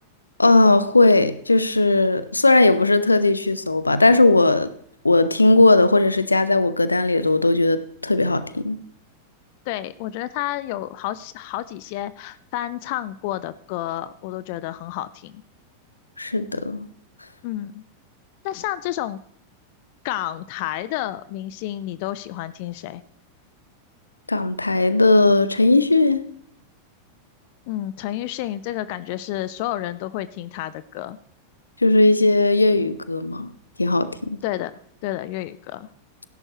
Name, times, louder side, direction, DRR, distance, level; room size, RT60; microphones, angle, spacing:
voice 1, 0.4-4.7 5.0-8.8 16.2-16.9 24.3-26.2 31.8-33.5 33.8-34.4, left 2 dB, 80° left, 0.8 m, -18 dB
voice 2, 9.7-15.4 17.4-17.8 18.4-19.2 20.0-23.0 27.7-31.2 34.4-34.7 35.0-35.9, left 14 dB, 45° left, 0.5 m, -30 dB
16.5 x 11.0 x 3.2 m
figure-of-eight pair, 90°, 0 cm